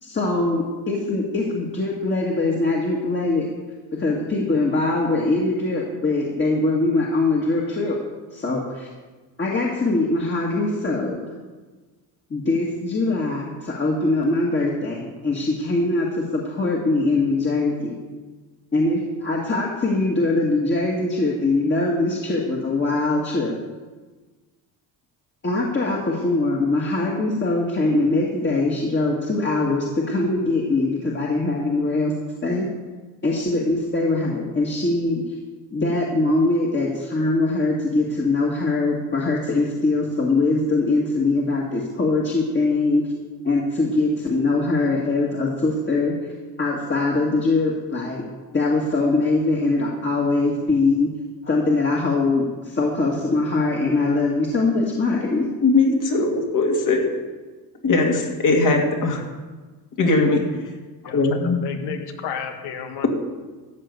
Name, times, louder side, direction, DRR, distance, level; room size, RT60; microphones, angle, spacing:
voice 1, 0.0-3.5 3.9-8.0 8.3-8.9 9.4-11.3 12.3-18.0 18.7-23.5 25.4-32.1 32.4-32.7 33.2-35.2 35.7-43.1 43.4-46.1 46.6-48.2 48.5-51.1 51.4-55.5, left 2 dB, 30° left, -3 dB, 2.0 m, -22 dB
voice 2, 55.6-57.1 57.8-59.2 60.0-60.4 61.1-61.6, left 3 dB, 50° left, 2 dB, 2.6 m, -19 dB
voice 3, 61.0-63.1, left 7 dB, 80° left, 6 dB, 1.6 m, -32 dB
14.0 x 5.8 x 8.2 m, 1.3 s
cardioid pair, 100°, 39 cm